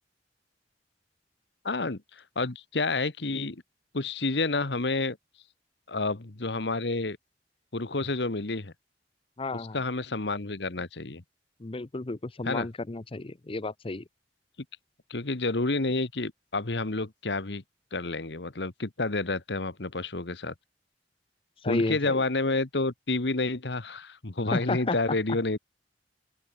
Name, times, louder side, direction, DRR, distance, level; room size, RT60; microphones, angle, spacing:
voice 1, 1.6-2.0 2.3-3.6 3.9-5.2 5.9-7.2 7.7-8.7 9.5-11.2 12.4-12.7 15.1-17.6 17.9-20.5 21.7-25.6, left 3 dB, 70° left, 1.5 m, -29 dB
voice 2, 9.4-9.8 11.6-14.0 21.6-22.2 24.5-25.0, left 2 dB, 30° left, 0.7 m, -32 dB
open air
head